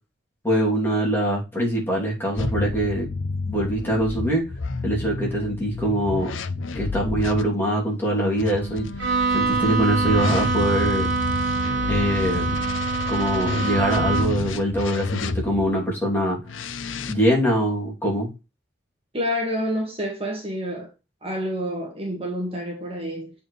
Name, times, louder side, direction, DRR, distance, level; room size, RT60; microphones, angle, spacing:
voice 1, 0.4-3.1 3.5-4.5 4.8-6.3 6.7-8.9 9.3-11.1 11.9-12.5 13.1-16.4 17.1-18.3, right 1 dB, 10° left, 2.9 m, -23 dB
sound 1, 2.4-7.4 8.4-15.7 16.5-17.1, left 3 dB, 90° left, 0.6 m, -30 dB
Wind instrument woodwind instrument, 8.2-12.9, right 1 dB, 70° left, 1.2 m, -39 dB
Bowed string instrument, 9.0-14.5, right 4 dB, 65° right, 1.5 m, -25 dB
voice 2, 19.1-20.9 21.2-23.3, equal, 30° right, 1.7 m, -28 dB
8.9 x 4.4 x 3.2 m
head